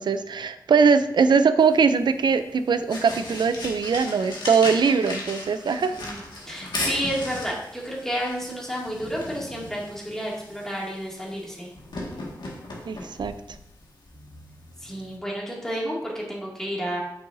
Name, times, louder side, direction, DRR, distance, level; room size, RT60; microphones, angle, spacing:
voice 1, 0.0-5.9 12.9-13.3, right 5 dB, 80° right, 11 dB, 0.4 m, -21 dB
sound 1, 1.6-15.2, left 2 dB, 75° left, 1.8 m, -37 dB
voice 2, 6.0-11.7 14.8-17.0, equal, 5° left, -4 dB, 2.3 m, -31 dB
8.6 x 6.7 x 2.7 m, 0.80 s
wide cardioid pair, 120°, 8 cm